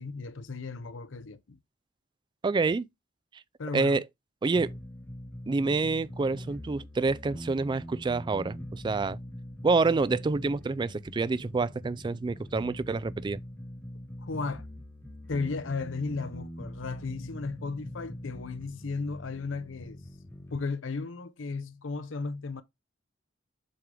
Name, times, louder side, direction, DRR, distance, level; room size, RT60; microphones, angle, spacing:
voice 1, 0.0-1.6 3.6-4.0 14.2-14.7 15.3-20.0 20.5-22.6, left 4 dB, 80° left, 0.7 m, -35 dB
voice 2, 2.4-2.9 3.7-4.0 4.4-4.7 5.5-9.2 9.6-13.4, right 3 dB, 25° right, 0.3 m, -27 dB
sound 1, 4.5-20.6, equal, 15° left, 0.9 m, -43 dB
7.7 x 3.8 x 3.3 m
head